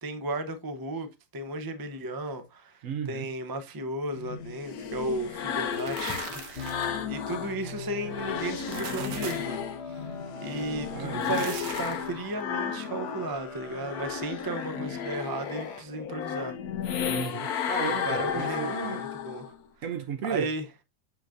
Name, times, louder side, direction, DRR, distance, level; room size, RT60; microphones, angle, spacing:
voice 1, 0.0-1.1 1.3-10.1 10.4-16.6 17.8-19.5 20.2-20.6, right 2 dB, 30° right, 0.4 m, -35 dB
voice 2, 2.8-3.3 10.9-11.4 17.1-19.0 19.8-20.5, right 7 dB, 65° right, 0.8 m, -34 dB
sound 1, 4.1-7.6 7.9-13.3 13.7-19.6, left 8 dB, 70° left, 1.3 m, -33 dB
sound 2, 5.6-7.0 8.5-9.6 11.1-12.1, right 7 dB, 85° right, 1.6 m, -40 dB
sound 3, 6.6-15.8, left 3 dB, 40° left, 1.3 m, -41 dB
7.2 x 6.0 x 2.5 m
omnidirectional pair, 1.8 m